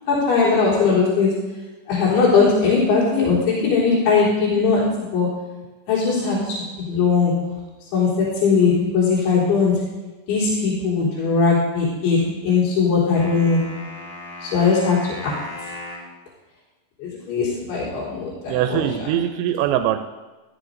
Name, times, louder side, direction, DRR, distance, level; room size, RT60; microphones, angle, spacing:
voice 1, 0.0-1.4 1.9-5.4 5.9-7.4 7.9-9.8 10.3-13.7 14.4-15.4 17.0-19.1, left 4 dB, 65° left, -8 dB, 5.7 m, -20 dB
sound 1, 13.1-16.1, left 1 dB, 50° left, 3.1 m, -36 dB
voice 2, 18.5-20.1, right 11 dB, 85° right, 7 dB, 2.9 m, -22 dB
14.5 x 14.5 x 2.6 m, 1.2 s
omnidirectional pair, 5.3 m